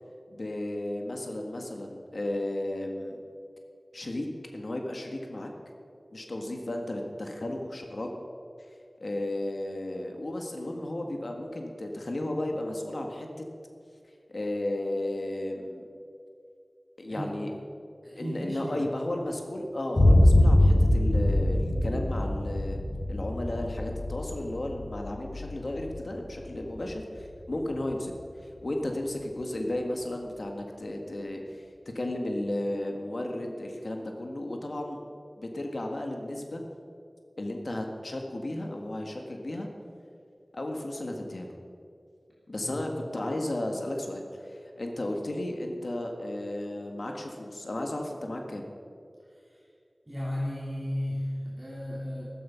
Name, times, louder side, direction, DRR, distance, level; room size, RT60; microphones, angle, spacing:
voice 1, 0.3-3.2 3.9-4.3 4.5-5.5 6.1-8.1 9.0-13.3 14.3-15.8 17.0-17.5 18.2-22.8 23.1-28.1 28.6-31.6 32.0-35.0 35.4-36.6 37.4-39.7 40.5-41.5 42.5-48.7, left 1 dB, 70° left, 2 dB, 1.7 m, -34 dB
voice 2, 18.0-18.8 42.6-42.8 49.3-49.6 50.1-52.2, left 1 dB, 15° right, -6 dB, 2.9 m, -34 dB
Boom, 20.0-27.8, left 1 dB, 45° left, 2.6 m, -24 dB
14.0 x 13.5 x 5.8 m, 2.5 s
wide cardioid pair, 55°, 0 cm